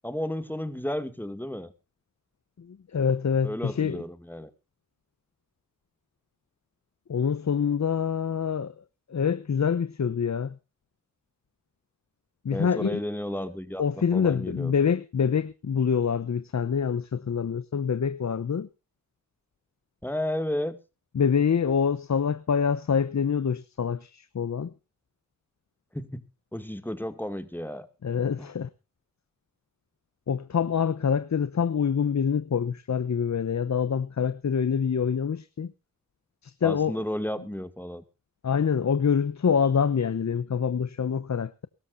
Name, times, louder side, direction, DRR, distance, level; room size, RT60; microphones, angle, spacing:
voice 1, 0.0-1.7 3.4-4.5 12.5-14.9 20.0-20.8 25.9-26.2 26.5-27.9 28.4-28.5 36.6-38.0, left 1 dB, 5° left, 2.3 m, -33 dB
voice 2, 2.6-4.0 7.1-8.7 9.1-10.5 12.4-13.0 13.8-18.7 21.1-24.7 28.0-28.7 30.3-35.7 36.4-37.0 38.4-41.7, left 7 dB, 50° left, 0.9 m, -26 dB
23.0 x 13.5 x 2.7 m
cardioid pair, 50°, 35 cm